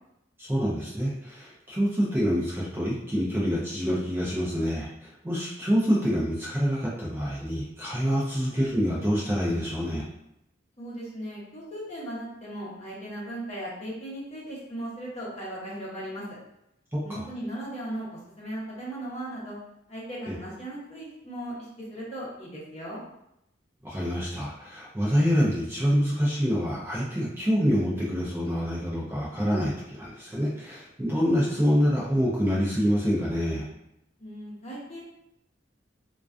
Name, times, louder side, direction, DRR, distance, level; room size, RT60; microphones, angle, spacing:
voice 1, 0.4-10.0 16.9-17.2 20.3-20.4 23.8-33.7, equal, 15° right, -6 dB, 0.4 m, -26 dB
voice 2, 10.8-16.2 17.0-19.6 19.9-23.0 34.2-35.0, right 1 dB, 35° left, -6 dB, 0.7 m, -37 dB
2.3 x 2.3 x 2.4 m, 0.82 s
head